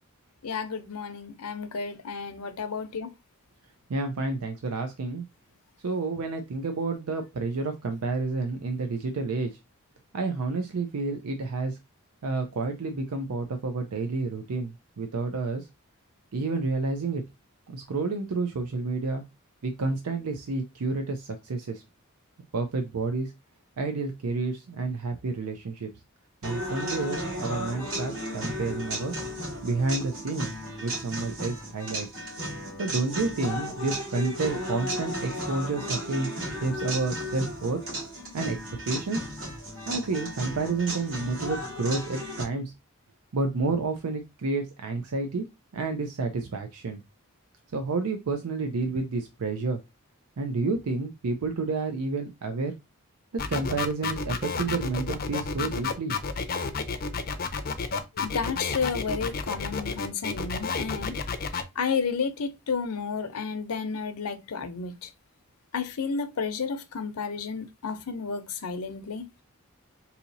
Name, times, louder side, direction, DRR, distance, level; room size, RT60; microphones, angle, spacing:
voice 1, 0.4-3.1 58.2-61.2 61.8-65.1 65.7-69.4, left 5 dB, 90° left, 0.6 m, -32 dB
voice 2, 3.9-5.2 5.8-9.6 10.1-11.8 12.2-15.6 16.3-17.2 17.7-19.2 19.6-21.8 22.5-23.3 23.8-25.9 26.4-29.1 29.6-32.2 32.8-37.8 38.3-38.6 38.8-39.3 39.9-42.7 43.3-45.5 45.7-47.0 47.7-49.8 50.4-52.8 53.5-56.1, right 3 dB, 90° right, 0.5 m, -30 dB
sound 1, 26.4-42.4, equal, 70° right, 2.2 m, -34 dB
sound 2, 53.4-61.6, left 5 dB, 40° left, 0.5 m, -30 dB
4.1 x 2.8 x 2.6 m
head